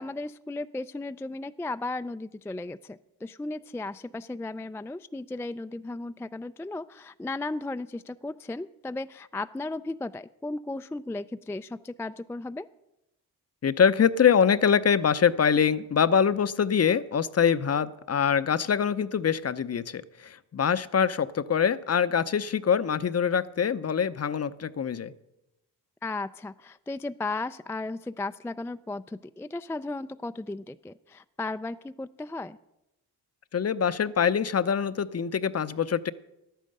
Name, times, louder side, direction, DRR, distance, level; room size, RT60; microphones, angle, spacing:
voice 1, 0.0-12.7 26.0-32.6, left 2 dB, 5° left, 11 dB, 0.3 m, -35 dB
voice 2, 13.6-25.1 33.5-36.1, left 7 dB, 35° left, 16 dB, 0.7 m, -24 dB
11.5 x 9.1 x 6.5 m, 0.91 s
supercardioid pair, 50°, 41 cm